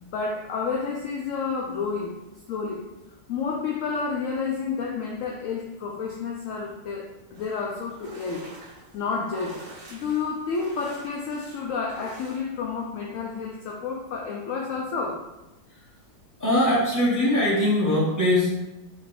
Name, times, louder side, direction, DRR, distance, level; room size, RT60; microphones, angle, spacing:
voice 1, 0.0-2.2 2.5-2.8 3.3-8.4 8.9-9.6 9.9-15.2, left 5 dB, 70° left, -2 dB, 0.7 m, -30 dB
sound 1, 7.3-12.4, right 3 dB, 55° right, 0.6 m, -46 dB
voice 2, 16.4-18.5, left 1 dB, 10° left, -9 dB, 1.3 m, -21 dB
4.0 x 2.7 x 3.6 m, 0.98 s
omnidirectional pair, 1.8 m